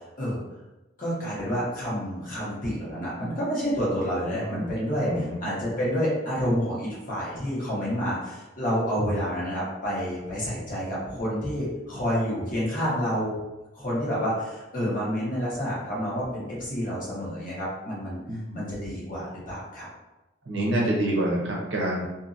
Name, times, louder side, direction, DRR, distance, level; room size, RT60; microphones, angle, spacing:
voice 1, 1.0-13.4 13.7-18.2 18.5-19.9, equal, 45° left, -7 dB, 1.1 m, -29 dB
voice 2, 4.3-4.7 5.1-5.4 18.3-18.6 20.5-22.1, right 1 dB, 65° right, -3 dB, 0.7 m, -27 dB
2.7 x 2.6 x 2.5 m, 1.0 s
head